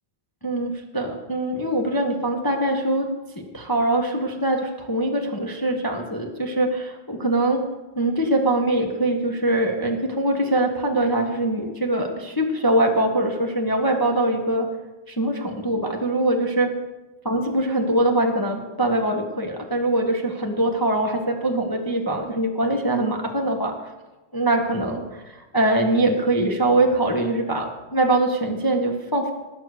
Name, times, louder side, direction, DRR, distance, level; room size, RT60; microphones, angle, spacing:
voice 1, 0.4-7.6 7.9-14.7 15.1-16.7 17.2-23.7 24.3-25.2 25.5-29.3, right 1 dB, 15° left, 2 dB, 1.1 m, -23 dB
19.5 x 7.6 x 6.7 m, 1.1 s
omnidirectional pair, 2.3 m